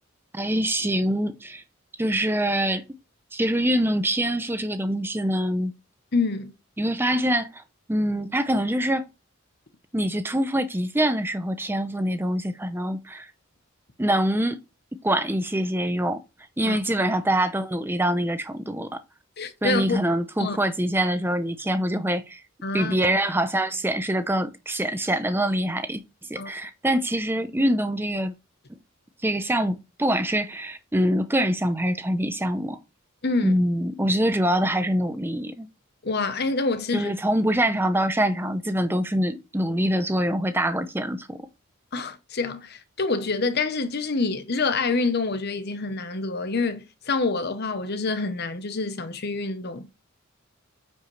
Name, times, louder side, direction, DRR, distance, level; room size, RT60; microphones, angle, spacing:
voice 1, 0.3-1.6 2.0-2.8 3.3-5.7 6.8-7.6 7.9-9.0 9.9-13.3 14.0-14.6 15.0-16.2 16.6-19.0 19.6-22.4 22.7-26.0 26.3-28.3 29.2-32.8 33.4-35.7 36.9-41.4, right 1 dB, 10° right, 0.7 m, -24 dB
voice 2, 6.1-6.5 16.7-16.8 19.4-20.0 20.4-20.6 22.6-22.9 26.4-26.5 33.2-33.5 36.0-37.1 41.9-49.9, left 3 dB, 50° left, 1.0 m, -27 dB
9.1 x 5.3 x 3.3 m
head